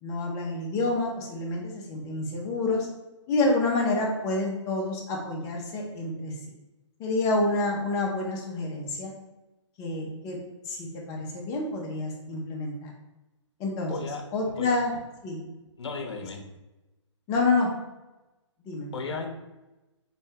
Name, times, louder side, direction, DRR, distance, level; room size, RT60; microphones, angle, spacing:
voice 1, 0.0-2.9 3.3-6.3 7.0-9.1 9.8-10.4 10.7-12.9 13.6-13.9 14.3-15.0 15.2-15.4 17.3-17.7 18.6-19.2, left 2 dB, 20° left, -1 dB, 0.7 m, -28 dB
voice 2, 13.9-14.8 15.8-16.4 18.9-19.3, left 4 dB, 65° left, 3 dB, 0.8 m, -35 dB
4.2 x 2.8 x 3.5 m, 1.0 s
hypercardioid pair, 145°, 16 cm